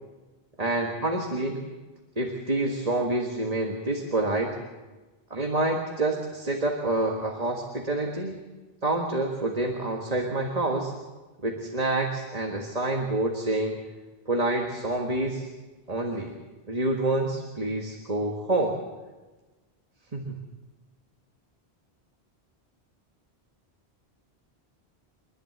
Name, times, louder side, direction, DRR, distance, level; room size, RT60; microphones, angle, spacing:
voice 1, 0.6-1.6 2.2-4.6 5.3-8.4 8.8-10.9 11.4-13.8 14.3-15.5 15.9-16.4 16.7-18.8 20.1-20.4, right 2 dB, 35° right, 1 dB, 1.8 m, -27 dB
28.5 x 11.5 x 7.9 m, 1.3 s
omnidirectional pair, 1.1 m